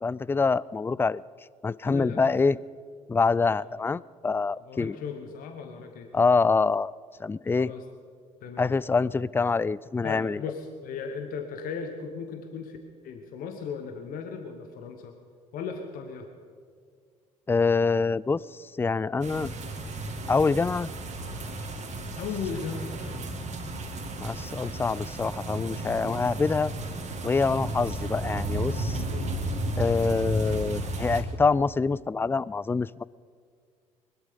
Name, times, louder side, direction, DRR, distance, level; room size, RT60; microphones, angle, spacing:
voice 1, 0.0-1.2 1.6-2.6 3.1-5.0 6.1-6.9 7.2-7.7 8.6-10.4 17.5-18.4 18.8-19.5 20.3-20.9 24.2-26.7 27.2-29.0 29.8-33.0, left 4 dB, 15° left, 22 dB, 0.3 m, -25 dB
voice 2, 1.8-2.3 3.4-3.6 4.5-6.1 7.5-7.8 8.4-8.7 10.0-12.8 13.0-15.1 15.5-16.3 22.2-23.3 29.1-29.5, left 6 dB, 60° left, 5 dB, 1.3 m, -37 dB
sound 1, 19.2-31.2, right 1 dB, 45° right, 2.4 m, -33 dB
21.5 x 12.5 x 5.3 m, 2.1 s
hypercardioid pair, 55°, 16 cm